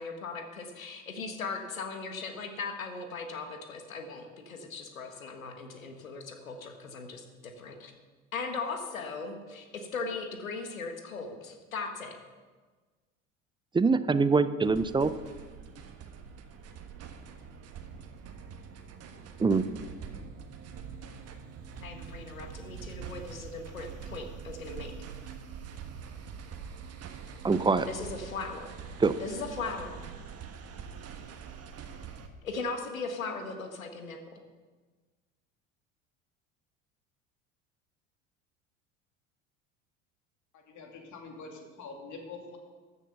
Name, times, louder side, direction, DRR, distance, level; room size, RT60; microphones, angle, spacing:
voice 1, 0.0-7.9 8.3-12.2 21.8-24.9 27.9-28.8 29.2-30.0 32.4-34.4, left 4 dB, 85° left, 6 dB, 1.4 m, -38 dB
voice 2, 13.7-15.1 19.4-19.7 27.4-27.9 29.0-29.2, right 4 dB, 10° right, 13 dB, 0.5 m, -24 dB
sound 1, 14.6-32.3, right 6 dB, 35° right, 1.4 m, -44 dB
voice 3, 40.5-42.6, left 4 dB, 45° left, 2 dB, 2.7 m, -45 dB
13.5 x 7.3 x 6.7 m, 1.4 s
figure-of-eight pair, 65°, 40 cm